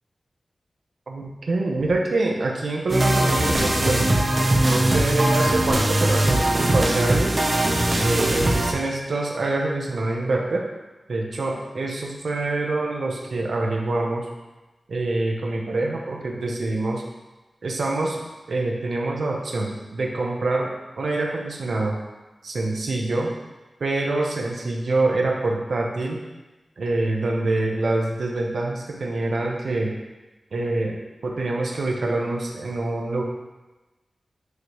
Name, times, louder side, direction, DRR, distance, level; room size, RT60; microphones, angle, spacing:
voice 1, 1.1-4.0 4.6-7.4 8.0-10.6 11.1-14.3 14.9-17.0 17.6-18.2 18.5-22.0 22.4-23.3 23.8-26.2 26.8-29.9 30.5-31.0 31.2-33.2, right 2 dB, 75° right, 0 dB, 0.9 m, -25 dB
sound 1, 2.9-8.7, right 1 dB, 40° right, 0.8 m, -20 dB
9.4 x 3.3 x 3.1 m, 1.1 s
wide cardioid pair, 95°, 0 cm